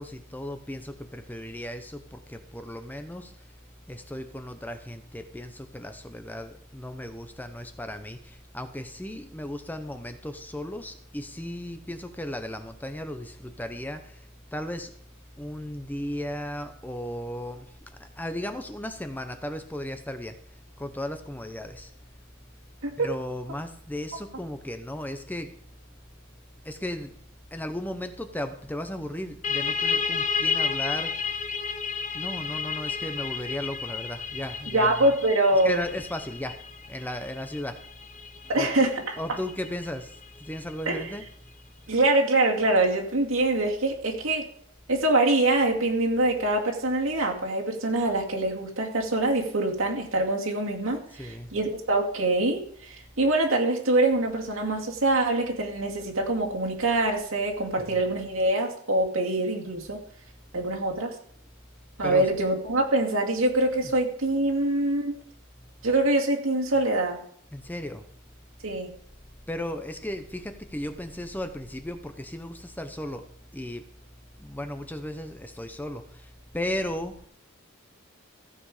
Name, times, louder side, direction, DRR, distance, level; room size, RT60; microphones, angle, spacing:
voice 1, 0.0-3.3 3.9-14.2 14.5-14.9 15.4-17.7 18.0-20.3 20.8-21.9 23.0-25.5 26.6-27.1 27.5-31.1 32.1-35.1 35.6-36.6 36.9-37.8 38.5-40.1 40.4-41.2 51.1-51.5 57.9-58.0 62.0-62.3 63.8-63.9 67.5-68.0 69.5-73.2 73.5-73.8 74.4-76.2 76.5-77.1, left 1 dB, 10° left, 8 dB, 0.8 m, -35 dB
sound 1, 29.4-40.8, left 5 dB, 35° left, 0.8 m, -32 dB
voice 2, 34.7-35.8 38.5-39.1 40.9-41.1 41.9-44.4 44.9-60.0 60.5-61.2 62.0-65.2 65.8-67.2 68.6-68.9, right 2 dB, 80° right, 0 dB, 2.4 m, -24 dB
15.0 x 7.8 x 5.0 m, 0.62 s
head